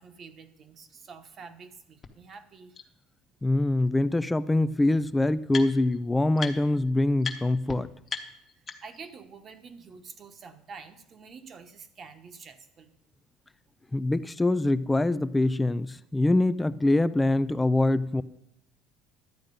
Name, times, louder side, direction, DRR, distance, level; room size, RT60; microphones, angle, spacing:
voice 1, 0.0-2.8 8.6-13.0, right 5 dB, 30° right, 10 dB, 1.0 m, -47 dB
sound 1, 2.0-2.1 2.7-2.8 4.1-4.2 4.5-6.0 6.4-6.8 7.2-7.4 7.7-7.8 8.1-9.1, left 5 dB, 25° left, 1.0 m, -37 dB
voice 2, 3.4-7.9 13.9-18.2, left 2 dB, 10° left, 15 dB, 0.3 m, -24 dB
12.0 x 8.7 x 5.2 m, 0.79 s
cardioid pair, 155°, 0 cm